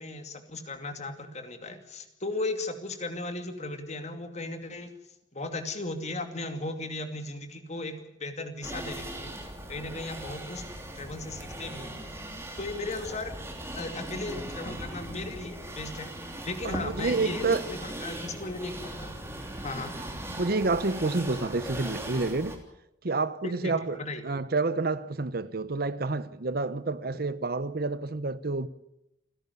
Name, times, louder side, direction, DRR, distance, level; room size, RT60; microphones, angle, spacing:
voice 1, 0.0-4.9 5.3-9.3 9.7-10.6 10.9-11.9 12.6-13.3 13.7-16.1 16.4-19.1 19.6-20.0 23.4-24.2, left 2 dB, 35° left, 2.5 m, -36 dB
sound 1, 8.6-22.6, right 1 dB, 15° right, 3.2 m, -39 dB
voice 2, 16.6-17.7 20.4-22.6 23.0-24.0 24.2-28.7, right 3 dB, 50° right, 0.8 m, -29 dB
29.0 x 11.0 x 9.9 m
head